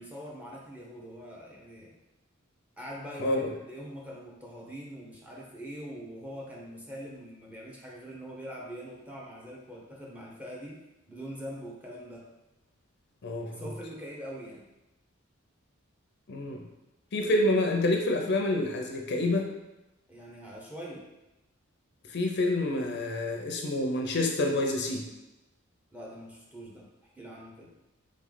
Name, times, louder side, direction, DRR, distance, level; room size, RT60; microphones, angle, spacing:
voice 1, 0.0-1.9 2.8-10.8 11.1-12.3 13.5-14.6 20.1-21.1 25.9-26.9 27.1-27.7, equal, 5° right, -4 dB, 0.7 m, -43 dB
voice 2, 13.2-13.6 16.3-16.6 17.1-19.5 22.1-25.1, left 1 dB, 55° left, 2 dB, 0.5 m, -27 dB
3.7 x 3.1 x 3.9 m, 0.97 s
head